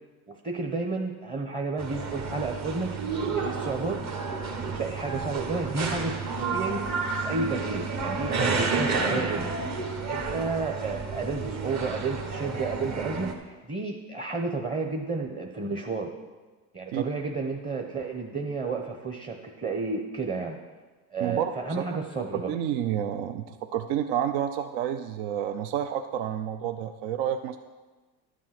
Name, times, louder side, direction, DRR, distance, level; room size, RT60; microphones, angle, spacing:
voice 1, 0.3-2.9 3.4-4.2 4.5-6.8 7.2-9.6 10.0-16.1 16.7-20.6 21.1-22.6, right 3 dB, 20° right, 2 dB, 1.0 m, -32 dB
sound 1, 1.8-13.3, right 4 dB, 40° right, 1.5 m, -30 dB
voice 2, 21.2-22.0 22.3-27.6, right 10 dB, 65° right, 8 dB, 0.7 m, -30 dB
12.5 x 7.4 x 6.0 m, 1.3 s
supercardioid pair, 115°, 42 cm